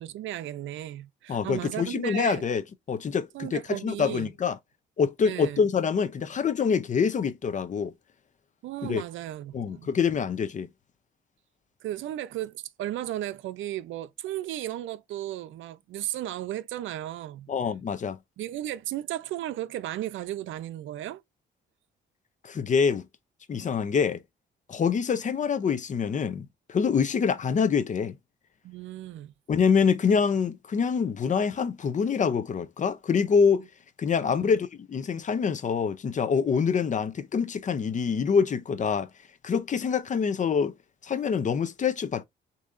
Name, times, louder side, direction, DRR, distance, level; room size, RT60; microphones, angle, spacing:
voice 1, 0.0-2.5 3.3-4.3 5.2-5.6 8.6-9.9 11.8-17.5 18.4-21.2 28.6-29.3 34.2-34.5, right 13 dB, 75° right, 0.5 m, -35 dB
voice 2, 1.3-2.6 2.9-4.6 5.0-7.9 8.8-9.0 9.5-10.7 17.5-18.2 22.4-23.1 23.5-24.2 24.7-28.2 29.5-33.7 34.0-39.1 39.4-40.7 41.0-42.2, left 6 dB, 40° left, 0.6 m, -25 dB
6.4 x 2.8 x 2.5 m
cardioid pair, 90°, 20 cm